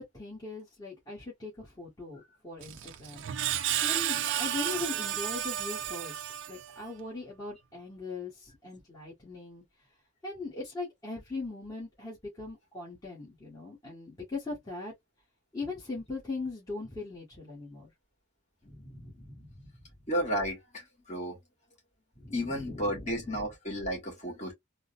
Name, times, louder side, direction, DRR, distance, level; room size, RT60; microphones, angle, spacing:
voice 1, 0.0-6.2 6.5-9.6 10.2-14.9 15.5-17.9 18.6-19.7 22.1-23.4, left 3 dB, 20° left, 1.4 m, -40 dB
Screech, 2.6-6.9, right 11 dB, 60° right, 0.4 m, -32 dB
voice 2, 20.1-21.4 22.3-24.5, equal, 35° left, 1.8 m, -33 dB
3.8 x 2.1 x 2.4 m
head